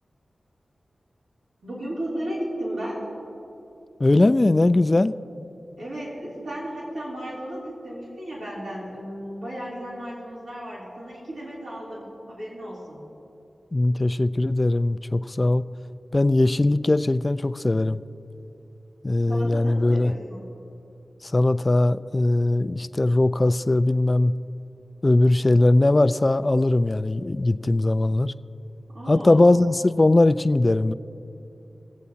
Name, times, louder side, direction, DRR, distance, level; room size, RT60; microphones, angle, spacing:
voice 1, 1.6-3.1 5.8-13.0 19.3-20.4 28.9-29.4, equal, 90° right, -9 dB, 3.2 m, -34 dB
voice 2, 4.0-5.1 13.7-15.6 16.1-18.0 19.0-20.1 21.2-24.3 25.0-28.3 29.1-30.9, left 2 dB, 35° left, 13 dB, 0.4 m, -20 dB
24.5 x 8.2 x 2.8 m, 2.8 s
cardioid pair, 45°, 0 cm